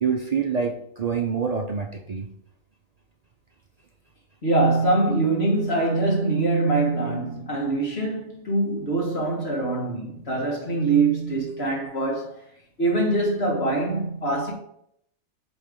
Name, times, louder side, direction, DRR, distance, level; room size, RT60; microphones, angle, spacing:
voice 1, 0.0-2.3, right 6 dB, 65° right, 0.4 m, -26 dB
voice 2, 4.4-12.4 12.8-14.5, right 2 dB, 50° left, 1.7 m, -23 dB
8.2 x 3.5 x 3.7 m
omnidirectional pair, 1.4 m